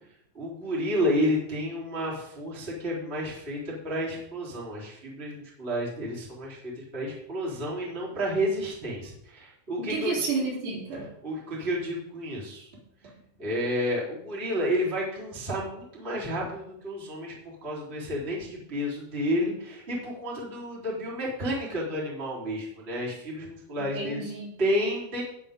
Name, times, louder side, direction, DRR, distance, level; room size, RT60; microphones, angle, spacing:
voice 1, 0.3-10.3 11.2-12.7 13.0-13.1 13.4-24.2 24.6-25.2, equal, 15° right, -5 dB, 3.2 m, -31 dB
voice 2, 9.8-11.1 23.9-24.6, right 4 dB, 60° right, -4 dB, 5.2 m, -31 dB
19.5 x 7.7 x 3.7 m, 0.75 s
omnidirectional pair, 5.8 m